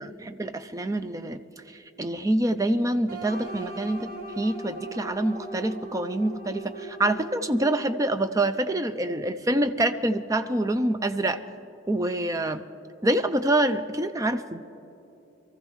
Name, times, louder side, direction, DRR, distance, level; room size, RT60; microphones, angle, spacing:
voice 1, 0.4-1.4 1.7-11.4 11.9-12.6 13.0-14.6, right 1 dB, 15° right, 9 dB, 0.4 m, -26 dB
sound 1, 3.1-8.0, right 1 dB, 75° right, 3.2 m, -39 dB
23.0 x 14.5 x 3.1 m, 2.8 s
head